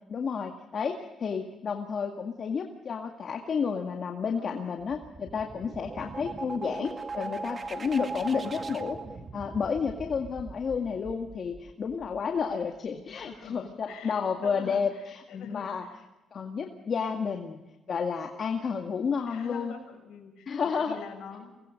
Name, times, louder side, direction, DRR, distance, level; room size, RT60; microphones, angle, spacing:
voice 1, 0.1-9.0 9.3-15.8 16.3-17.6 17.9-19.7 20.5-21.0, left 6 dB, 50° left, 3 dB, 2.0 m, -31 dB
voice 2, 4.4-4.8 7.2-7.3 13.1-16.0 19.3-21.5, left 6 dB, 80° left, 2 dB, 6.7 m, -45 dB
sound 1, 4.8-12.4, right 3 dB, 35° right, 1.9 m, -40 dB
24.5 x 20.5 x 5.2 m, 1.0 s
cardioid pair, 90°, 0 cm